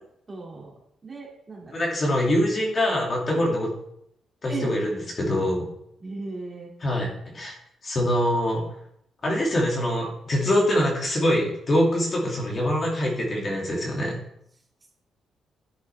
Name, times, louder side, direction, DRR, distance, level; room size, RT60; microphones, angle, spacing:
voice 1, 0.3-0.7 1.0-1.8 3.3-3.4 4.5-4.7 6.0-6.7, right 3 dB, 25° right, -2 dB, 2.7 m, -36 dB
voice 2, 1.7-3.7 4.4-5.6 6.8-7.6 7.8-8.6 9.2-14.2, left 1 dB, 35° left, -2 dB, 2.7 m, -24 dB
10.5 x 8.4 x 3.6 m, 0.73 s
cardioid pair, 145°, 0 cm